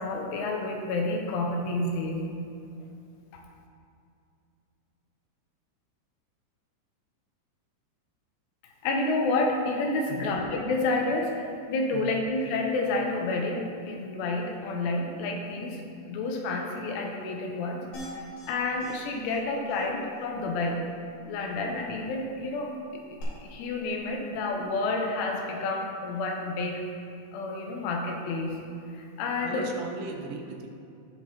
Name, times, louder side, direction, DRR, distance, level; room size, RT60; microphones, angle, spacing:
voice 1, 0.0-2.2 8.6-15.8 16.1-17.8 18.1-20.8 21.3-26.8 27.3-28.5 28.9-29.7, left 2 dB, 85° left, 1 dB, 3.1 m, -30 dB
voice 2, 10.1-10.4 11.9-12.2 29.4-30.7, right 4 dB, 85° right, 2 dB, 3.1 m, -38 dB
sound 1, 17.9-18.5 18.8-18.9 19.2-19.4 19.7-19.8 23.2-23.3, equal, 50° left, 3.1 m, -41 dB
15.0 x 5.9 x 2.9 m, 2.5 s
omnidirectional pair, 5.8 m